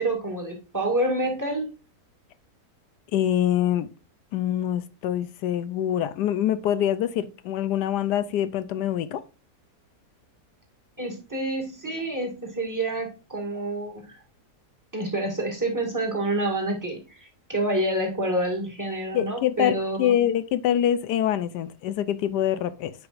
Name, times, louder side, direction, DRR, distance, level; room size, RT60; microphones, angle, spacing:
voice 1, 0.0-1.7 11.0-14.0 14.9-20.1, right 1 dB, 10° right, 1.8 m, -28 dB
voice 2, 3.1-3.9 4.3-9.2 19.1-22.9, left 11 dB, 80° left, 1.2 m, -25 dB
9.5 x 4.9 x 2.5 m
omnidirectional pair, 1.8 m